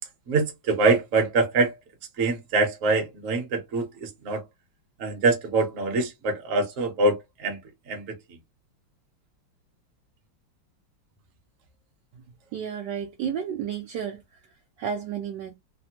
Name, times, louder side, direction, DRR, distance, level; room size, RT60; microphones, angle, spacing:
voice 1, 0.3-1.7 2.2-4.4 5.0-7.6 7.9-8.1, right 3 dB, 50° right, 1.1 m, -24 dB
voice 2, 12.5-14.4 14.8-15.5, right 8 dB, 70° right, 1.1 m, -32 dB
3.3 x 2.2 x 2.8 m
omnidirectional pair, 2.2 m